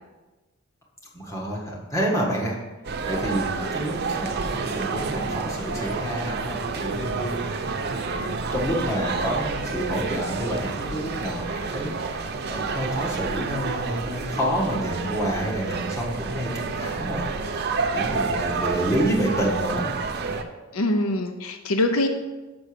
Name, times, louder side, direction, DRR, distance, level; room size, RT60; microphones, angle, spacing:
voice 1, 1.1-2.6 3.1-7.4 8.2-17.2 17.9-19.9, right 1 dB, 15° left, -3 dB, 1.6 m, -28 dB
sound 1, 2.8-20.4, right 4 dB, 50° right, 0.6 m, -29 dB
voice 2, 20.7-22.1, left 1 dB, 80° left, 7 dB, 0.6 m, -23 dB
6.1 x 5.3 x 6.7 m, 1.2 s
head